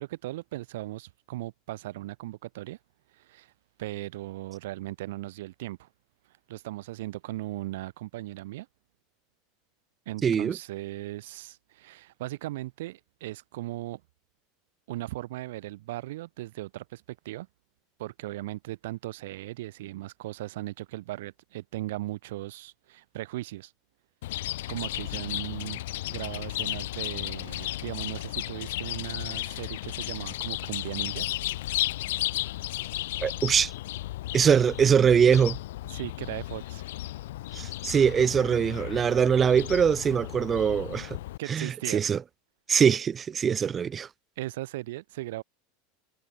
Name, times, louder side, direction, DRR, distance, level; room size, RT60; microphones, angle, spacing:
voice 1, 0.0-2.8 3.1-3.5 3.8-5.9 6.5-8.7 10.1-14.0 14.9-17.5 18.0-23.7 24.7-25.8 26.1-31.3 35.9-36.8 41.4-42.0 44.4-45.4, right 17 dB, 70° right, 7.4 m, -37 dB
voice 2, 10.2-10.6 33.2-33.7 34.3-35.6 37.5-41.2 41.5-42.2 42.7-44.1, right 7 dB, 15° right, 0.6 m, -23 dB
Chirp tweet, 24.2-41.4, left 16 dB, 75° left, 1.3 m, -34 dB
supercardioid pair, 170°, 0 cm